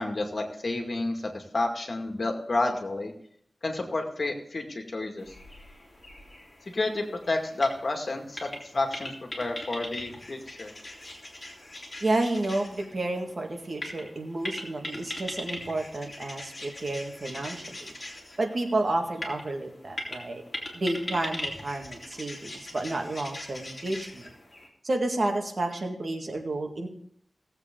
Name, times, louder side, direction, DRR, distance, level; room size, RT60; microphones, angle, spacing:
voice 1, 0.0-3.1 3.6-5.3 6.7-10.7, left 2 dB, 55° left, 3 dB, 2.2 m, -30 dB
sound 1, 5.2-24.7, left 1 dB, 30° left, 3.4 m, -41 dB
voice 2, 12.0-17.9 18.4-20.4 20.7-24.3 24.8-26.9, right 2 dB, 55° right, 3 dB, 1.9 m, -30 dB
18.0 x 8.0 x 3.8 m, 0.67 s
wide cardioid pair, 85°, 0 cm